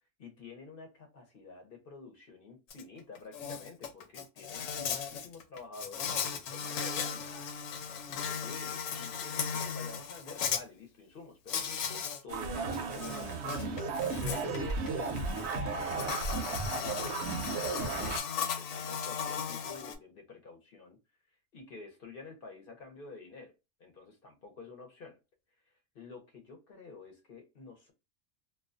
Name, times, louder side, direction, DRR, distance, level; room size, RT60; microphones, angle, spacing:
voice 1, 0.2-7.5 8.1-13.7 14.2-21.0 21.5-23.5 23.8-25.2 25.7-27.9, left 4 dB, 50° left, 0.8 m, -49 dB
Insect, 2.7-2.8 3.2-10.6 11.5-12.2 12.6-20.0, left 7 dB, 85° left, 1.0 m, -37 dB
sound 1, 12.3-18.2, right 4 dB, 65° right, 0.8 m, -34 dB
2.4 x 2.2 x 2.4 m
omnidirectional pair, 1.3 m